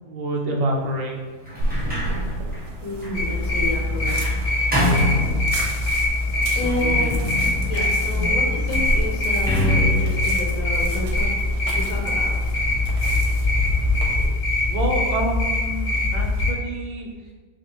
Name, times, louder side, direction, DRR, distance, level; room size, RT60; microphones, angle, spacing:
voice 1, 0.0-1.2 6.5-7.2 8.2-8.4 14.7-17.1, right 2 dB, 70° right, -1 dB, 0.4 m, -27 dB
Sliding door, 1.4-5.9 6.6-11.4, left 1 dB, 5° right, 0.9 m, -27 dB
sound 1, 1.6-14.3, right 1 dB, 90° right, 1.2 m, -32 dB
voice 2, 2.8-4.2 6.5-7.2 7.4-8.4 8.7-11.3 11.7-12.4, left 2 dB, 65° left, -1 dB, 1.2 m, -30 dB
sound 2, 3.1-16.5, left 2 dB, 85° left, 1.3 m, -23 dB
6.4 x 2.2 x 2.9 m, 1.4 s
omnidirectional pair, 1.6 m